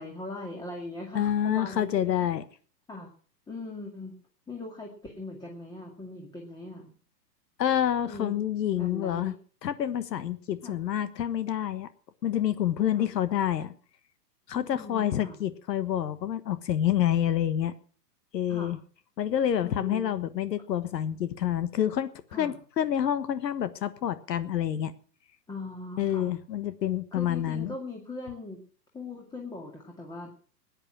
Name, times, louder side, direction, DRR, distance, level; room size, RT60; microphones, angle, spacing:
voice 1, 0.0-2.3 2.9-3.1 3.5-4.2 4.5-6.9 8.1-8.3 8.7-9.4 10.6-10.8 12.9-13.1 14.5-15.4 18.5-18.8 19.6-20.1 22.3-22.5 25.5-26.3 27.1-28.6 28.9-30.3, left 2 dB, 10° left, 1 dB, 2.1 m, -40 dB
voice 2, 1.1-2.4 7.6-9.3 9.6-11.9 12.2-13.7 14.5-17.7 18.3-18.8 19.2-22.1 22.4-24.9 26.0-27.7, left 10 dB, 75° left, 13 dB, 1.4 m, -28 dB
16.5 x 10.0 x 6.1 m, 0.42 s
hypercardioid pair, 140°, 50 cm